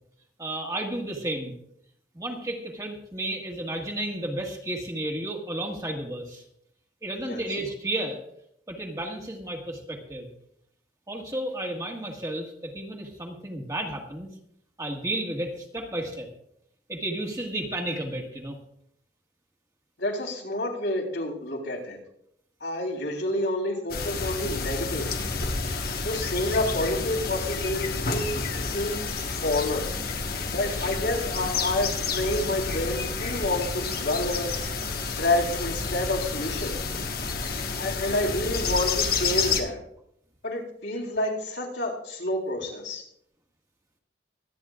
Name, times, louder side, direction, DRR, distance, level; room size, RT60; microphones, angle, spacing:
voice 1, 0.4-1.5 2.1-6.4 7.0-8.2 8.7-10.3 11.1-14.3 14.8-16.3 16.9-18.6 23.7-23.8 25.7-26.0 30.7-30.9, right 1 dB, 20° right, 0 dB, 1.6 m, -33 dB
voice 2, 20.0-22.0 22.6-25.1 26.0-29.1 29.4-29.9 30.5-34.5 35.2-36.8 37.8-39.8 40.4-43.0, left 1 dB, 75° left, -2 dB, 3.7 m, -29 dB
sound 1, 23.9-39.6, left 4 dB, 55° left, 1.3 m, -30 dB
24.5 x 9.4 x 2.4 m, 0.73 s
head